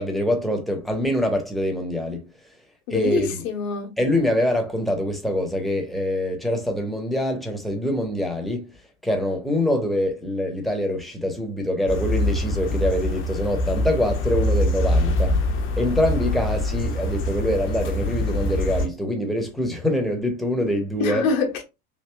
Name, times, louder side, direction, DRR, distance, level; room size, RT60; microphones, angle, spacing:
voice 1, 0.0-2.3 2.9-3.4 4.0-8.7 9.0-15.4 15.8-21.3, left 1 dB, ahead, 0.8 m, -24 dB
voice 2, 2.9-3.9 21.0-21.6, left 5 dB, 60° left, 0.9 m, -24 dB
sound 1, 11.9-18.9, left 1 dB, 30° left, 0.6 m, -24 dB
3.3 x 2.7 x 2.2 m
figure-of-eight pair, 75°, 43 cm